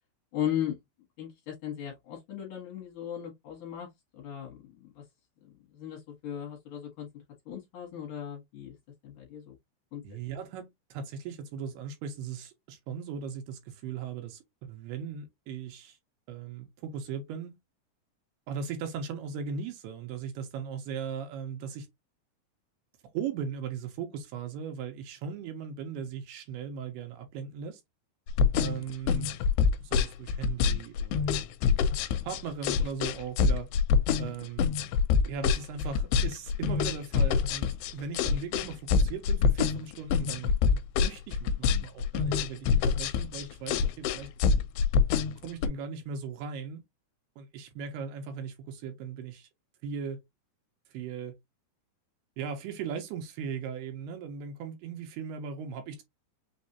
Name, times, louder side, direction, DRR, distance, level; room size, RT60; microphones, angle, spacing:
voice 1, 0.3-0.8 1.2-5.0 5.4-7.1 7.5-8.8 9.0-9.6 9.9-10.0, left 10 dB, 60° left, 2.6 m, -37 dB
voice 2, 10.0-16.0 16.3-17.6 18.5-21.9 23.1-27.8 28.5-29.3 29.8-31.5 32.2-33.7 34.2-34.7 35.3-44.3 45.4-46.8 47.4-49.5 49.8-50.2 50.9-51.3 52.4-56.0, right 6 dB, 75° right, 2.9 m, -38 dB
sound 1, 28.3-45.7, left 6 dB, 80° left, 2.6 m, -25 dB
6.4 x 2.7 x 2.7 m
omnidirectional pair, 4.9 m